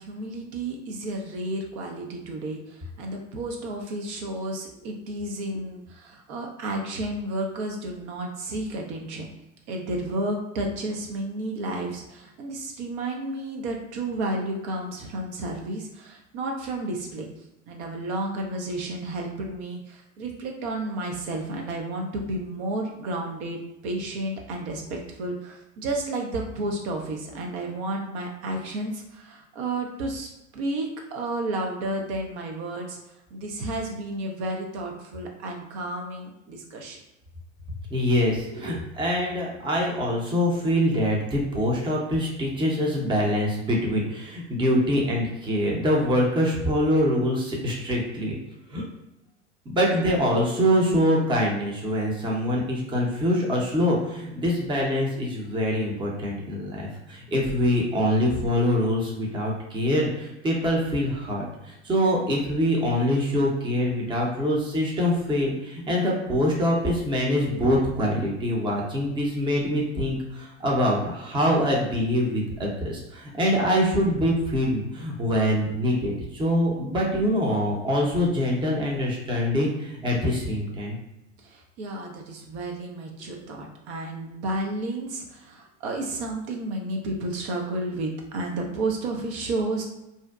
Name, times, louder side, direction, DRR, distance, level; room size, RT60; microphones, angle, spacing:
voice 1, 0.0-9.3 9.7-17.3 17.7-33.0 33.3-37.0 38.5-38.8 81.4-89.8, right 2 dB, 60° right, 1 dB, 0.6 m, -32 dB
voice 2, 37.9-48.4 48.7-48.8 49.7-81.0, equal, 15° right, -2 dB, 0.6 m, -24 dB
2.6 x 2.1 x 2.3 m, 0.90 s
hypercardioid pair, 90°, 37 cm